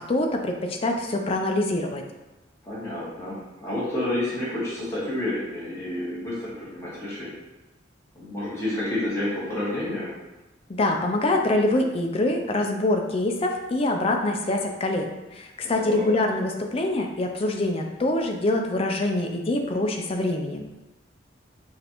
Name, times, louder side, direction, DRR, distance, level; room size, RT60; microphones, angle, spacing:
voice 1, 0.0-2.0 10.7-20.7, left 2 dB, 30° left, 3 dB, 0.4 m, -25 dB
voice 2, 2.6-7.3 8.1-10.1 15.6-16.1, left 1 dB, 15° left, -9 dB, 1.4 m, -30 dB
5.0 x 2.6 x 2.9 m, 1.1 s
head